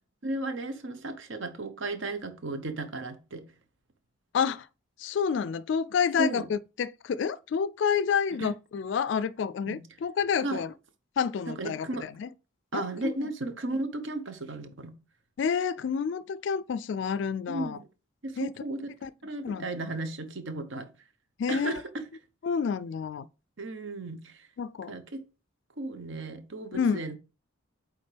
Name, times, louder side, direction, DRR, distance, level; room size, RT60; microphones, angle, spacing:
voice 1, 0.2-3.5 6.2-6.5 8.4-8.5 9.7-9.9 10.4-10.6 11.5-12.1 12.7-15.0 17.5-17.8 18.2-18.9 19.2-20.9 21.5-22.0 23.6-24.5 24.9-25.2 25.8-27.2, right 2 dB, 70° right, 0.9 m, -35 dB
voice 2, 4.3-4.7 5.0-10.7 11.2-12.3 12.7-13.3 15.4-17.8 18.4-18.5 19.0-19.1 19.4-19.7 21.4-21.8 22.4-23.3 24.6-25.0 26.7-27.0, left 6 dB, 60° left, 0.3 m, -29 dB
8.5 x 3.5 x 3.4 m
head